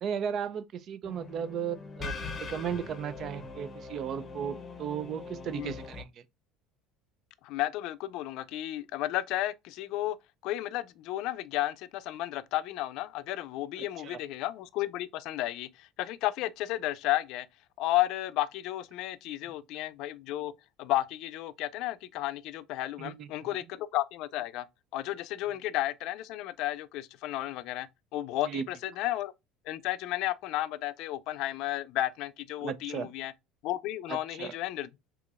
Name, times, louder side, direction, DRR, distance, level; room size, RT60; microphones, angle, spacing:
voice 1, 0.0-2.1 2.4-6.1 14.0-14.2 23.0-23.3 28.4-28.6 32.6-33.1 34.1-34.5, right 8 dB, 45° right, 0.4 m, -35 dB
sound 1, 1.0-6.0, left 4 dB, 25° left, 0.8 m, -42 dB
voice 2, 7.4-10.2 10.4-17.5 17.8-20.5 20.8-24.7 24.9-27.9 28.1-29.3 29.7-33.3 33.6-34.9, left 15 dB, 65° left, 0.4 m, -33 dB
3.8 x 2.9 x 2.3 m
supercardioid pair, 115°, 0 cm